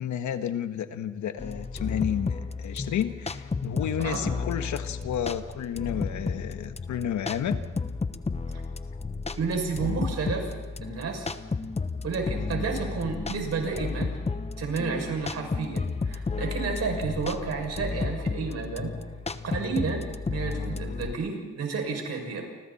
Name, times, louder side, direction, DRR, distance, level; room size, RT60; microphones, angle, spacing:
voice 1, 0.0-7.6, left 9 dB, 70° left, 8 dB, 1.5 m, -31 dB
sound 1, 1.4-21.1, left 4 dB, 20° left, 1.0 m, -33 dB
voice 2, 9.4-10.5 10.8-11.3 12.0-14.1 14.6-18.9 19.4-22.5, right 4 dB, 55° right, 2 dB, 6.9 m, -31 dB
29.5 x 25.0 x 4.4 m, 1.2 s
cardioid pair, 90°, 30 cm